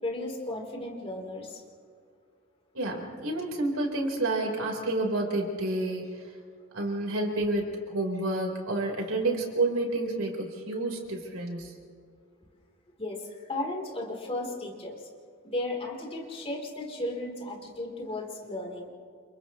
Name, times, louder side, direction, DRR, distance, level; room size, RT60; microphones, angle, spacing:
voice 1, 0.0-1.6 13.0-15.1 15.4-18.9, left 2 dB, 30° left, -1 dB, 3.9 m, -35 dB
voice 2, 2.7-6.1 6.7-11.7, right 2 dB, 70° right, 1 dB, 4.6 m, -29 dB
30.0 x 29.5 x 3.2 m, 2.3 s
head